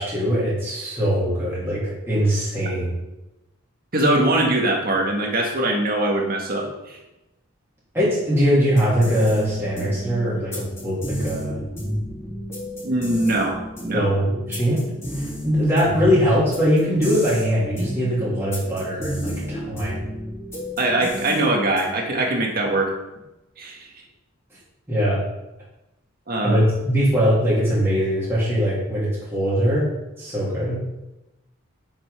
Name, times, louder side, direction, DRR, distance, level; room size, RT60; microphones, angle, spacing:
voice 1, 0.0-2.9 7.9-11.6 13.9-14.8 15.1-20.0 24.9-25.2 26.4-29.9 30.2-30.8, equal, 10° right, -9 dB, 3.1 m, -21 dB
voice 2, 3.9-7.0 12.8-14.1 20.8-23.0 23.6-23.9 26.3-26.6, right 1 dB, 45° right, 1 dB, 1.9 m, -22 dB
sound 1, 8.6-22.1, equal, 15° left, 3.2 m, -32 dB
7.9 x 6.1 x 5.7 m, 0.96 s
head